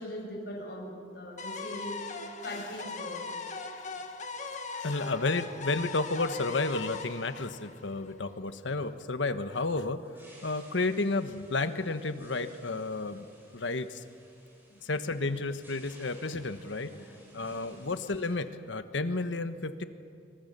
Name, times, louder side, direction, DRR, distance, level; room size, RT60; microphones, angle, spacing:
voice 1, 0.0-2.0 2.4-3.3 14.7-14.8 16.9-17.2 17.6-17.8, left 1 dB, 60° left, -1 dB, 6.2 m, -41 dB
sound 1, 1.4-8.3, left 3 dB, 40° left, 1.9 m, -40 dB
voice 2, 4.7-10.0 10.4-13.3 13.5-14.0 14.8-16.9 17.3-19.8, left 3 dB, 80° left, 10 dB, 1.2 m, -32 dB
sound 2, 7.5-18.4, right 1 dB, 10° right, 6.0 m, -58 dB
26.5 x 24.0 x 6.8 m, 2.5 s
head